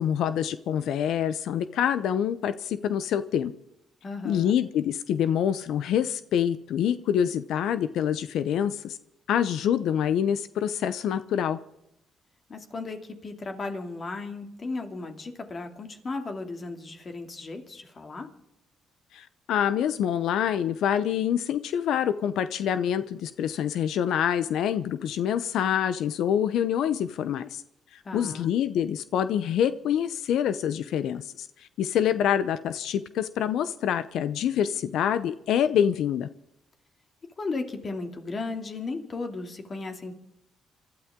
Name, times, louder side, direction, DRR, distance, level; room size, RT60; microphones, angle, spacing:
voice 1, 0.0-3.5 4.2-9.0 9.3-11.6 19.1-27.6 27.9-36.3, left 9 dB, 80° left, 13 dB, 0.6 m, -26 dB
voice 2, 4.0-4.6 12.5-18.3 28.0-28.5 37.4-40.1, left 3 dB, 40° left, 4 dB, 2.6 m, -35 dB
27.5 x 12.5 x 3.7 m, 0.80 s
cardioid pair, 90°, 0 cm